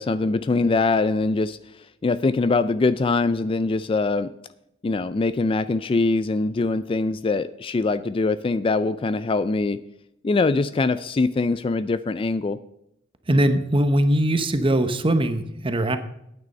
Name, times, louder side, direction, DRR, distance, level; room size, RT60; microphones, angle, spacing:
voice 1, 0.0-4.3 4.8-9.8 10.2-12.6, left 3 dB, 25° left, 14 dB, 0.3 m, -23 dB
voice 2, 13.3-16.0, right 1 dB, 25° right, 10 dB, 0.9 m, -21 dB
9.5 x 9.0 x 5.3 m, 0.80 s
head